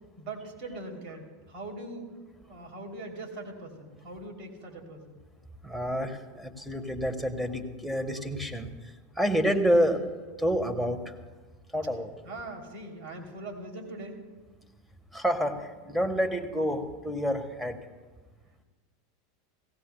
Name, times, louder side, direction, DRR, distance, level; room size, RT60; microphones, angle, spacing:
voice 1, 0.2-5.2 12.2-14.2, right 2 dB, 55° right, 1 dB, 3.2 m, -41 dB
voice 2, 5.6-8.7 9.2-10.0 10.4-11.0 11.7-12.1 15.1-17.8, equal, 5° right, 7 dB, 1.5 m, -28 dB
17.5 x 16.5 x 2.3 m, 1.3 s
hypercardioid pair, 95°, 0 cm